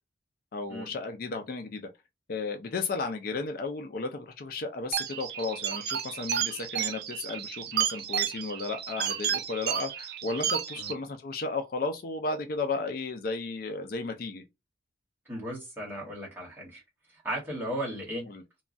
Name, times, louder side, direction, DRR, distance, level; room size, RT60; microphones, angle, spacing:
voice 1, 0.5-1.9 2.3-14.4 18.3-18.4, left 3 dB, 50° left, 0.4 m, -34 dB
sound 1, 4.9-10.9, right 9 dB, 55° right, 0.4 m, -32 dB
voice 2, 15.3-16.8 17.1-18.2, right 1 dB, 10° right, 1.2 m, -36 dB
3.0 x 2.2 x 2.5 m
head